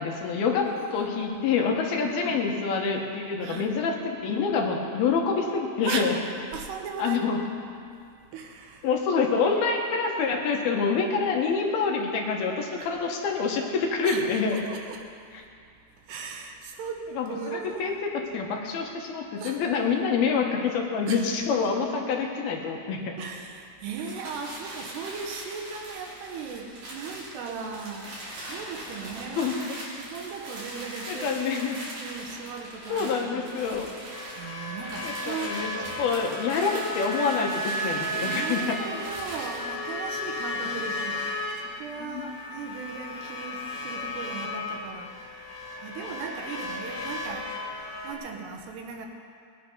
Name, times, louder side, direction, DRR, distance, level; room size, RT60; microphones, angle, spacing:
voice 1, 0.0-6.2 7.0-7.4 8.8-14.6 17.1-23.1 29.4-29.8 31.1-31.8 32.9-33.9 35.0-35.7 36.0-38.8 42.0-42.3, left 5 dB, 70° left, 1 dB, 3.0 m, -27 dB
voice 2, 2.0-2.4 3.4-3.8 5.8-6.2 6.5-7.4 8.3-8.9 12.8-12.9 14.0-15.1 16.1-17.9 19.4-19.6 21.1-21.3 21.6-21.7 23.2-29.5 30.0-31.7 32.0-33.5 34.4-36.0 38.2-41.3 41.6-45.2 45.8-47.5 48.0-49.1, right 5 dB, 80° right, 3 dB, 3.2 m, -37 dB
sound 1, 23.9-39.7, right 1 dB, 60° right, 4.8 m, -41 dB
sound 2, 34.1-48.1, left 1 dB, 50° left, 3.8 m, -34 dB
19.5 x 10.0 x 5.4 m, 2.3 s
omnidirectional pair, 4.8 m